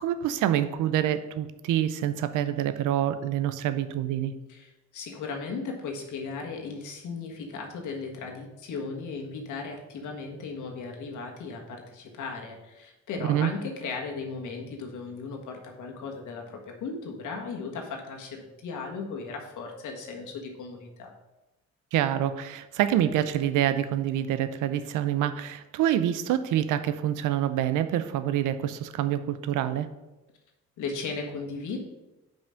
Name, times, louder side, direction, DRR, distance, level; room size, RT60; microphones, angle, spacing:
voice 1, 0.0-4.3 13.3-13.5 21.9-29.9, right 11 dB, 85° right, 12 dB, 0.6 m, -26 dB
voice 2, 4.5-21.1 30.8-31.8, left 4 dB, 80° left, 1 dB, 1.6 m, -36 dB
5.6 x 5.3 x 6.3 m, 1.0 s
cardioid pair, 90°, 30 cm